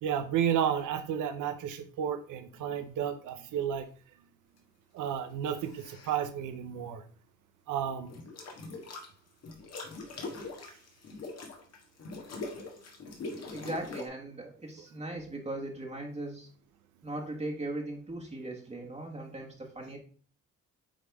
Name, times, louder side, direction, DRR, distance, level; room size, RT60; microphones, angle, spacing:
voice 1, 0.0-3.9 4.9-7.0 7.7-8.1, right 9 dB, 80° right, 9 dB, 0.7 m, -32 dB
sound 1, 5.5-6.2 8.1-9.1 9.4-14.1, left 3 dB, 55° left, 1.6 m, -42 dB
voice 2, 13.5-16.5 17.0-20.0, right 2 dB, 20° right, 0 dB, 1.4 m, -38 dB
8.8 x 3.5 x 3.5 m, 0.42 s
cardioid pair, 90°, 30 cm